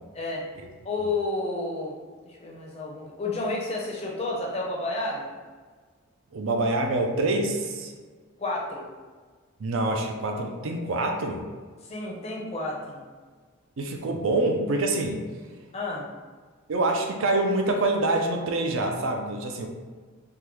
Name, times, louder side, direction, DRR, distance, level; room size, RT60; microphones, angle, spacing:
voice 1, 0.8-1.9 2.2-5.3 8.4-8.9 11.8-13.0 15.7-16.1, left 2 dB, 30° left, -3 dB, 0.5 m, -31 dB
voice 2, 6.3-7.9 9.6-11.4 13.8-15.2 16.7-19.7, right 2 dB, 65° right, 3 dB, 0.4 m, -26 dB
3.6 x 2.2 x 3.0 m, 1.5 s
head